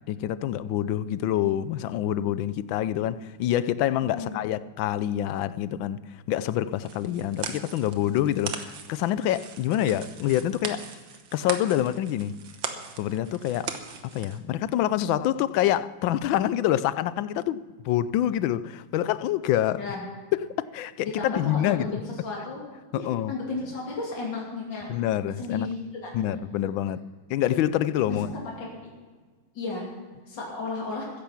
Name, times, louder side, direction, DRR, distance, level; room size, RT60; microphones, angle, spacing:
voice 1, 0.1-10.9 11.3-12.4 13.0-13.7 14.1-19.8 20.3-22.0 22.9-23.4 24.9-25.7 26.1-27.0 27.3-28.3, left 12 dB, 80° left, 1.3 m, -26 dB
voice 2, 4.0-4.4 19.8-20.0 21.0-22.6 23.0-24.9 25.4-26.2 28.1-28.9 29.5-29.9 30.3-31.0, left 3 dB, 65° left, 3.4 m, -34 dB
sound 1, 6.8-14.4, right 6 dB, 75° right, 1.9 m, -39 dB
14.5 x 10.5 x 5.8 m
omnidirectional pair, 2.1 m